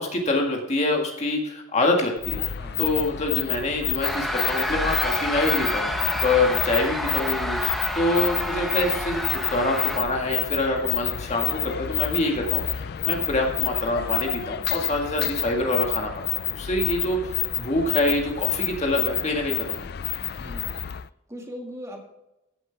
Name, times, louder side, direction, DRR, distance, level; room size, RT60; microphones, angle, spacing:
voice 1, 0.0-2.4 2.8-7.6 8.0-19.9, left 2 dB, 35° left, 1 dB, 1.8 m, -26 dB
sound 1, 2.2-21.1, left 12 dB, 50° left, 0.4 m, -29 dB
sound 2, 4.0-10.0, equal, ahead, 1.2 m, -29 dB
voice 2, 20.3-20.7 21.3-22.1, equal, 15° right, 1 dB, 2.0 m, -39 dB
16.0 x 7.8 x 3.5 m, 0.90 s
head